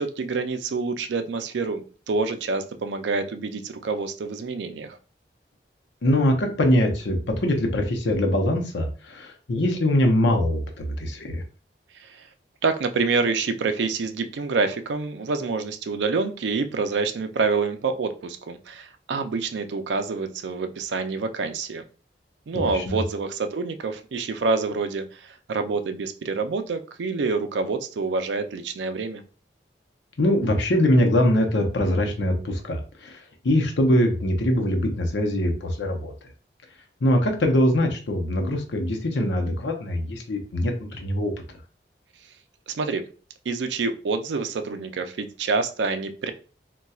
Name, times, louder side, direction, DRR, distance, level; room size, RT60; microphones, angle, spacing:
voice 1, 0.0-1.8 2.1-5.0 12.0-12.3 12.6-21.8 22.5-29.2 42.7-43.1 43.5-46.3, right 4 dB, 85° right, 8 dB, 0.4 m, -27 dB
voice 2, 6.0-11.4 22.5-23.0 30.2-33.2 33.4-36.1 37.0-41.3, left 1 dB, 85° left, 3 dB, 0.7 m, -23 dB
4.1 x 2.2 x 2.3 m, 0.38 s
head